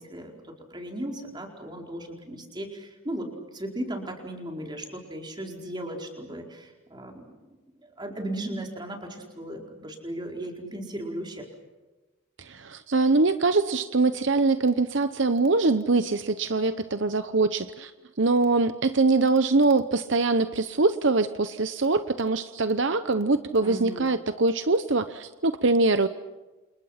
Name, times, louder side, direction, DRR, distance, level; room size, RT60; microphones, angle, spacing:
voice 1, 0.0-3.3 3.5-7.6 7.8-11.4 23.6-24.1, right 1 dB, 20° right, 1 dB, 4.6 m, -36 dB
voice 2, 12.4-17.9 18.2-26.1, right 3 dB, 65° right, 10 dB, 0.9 m, -23 dB
29.0 x 29.0 x 5.9 m, 1.1 s
head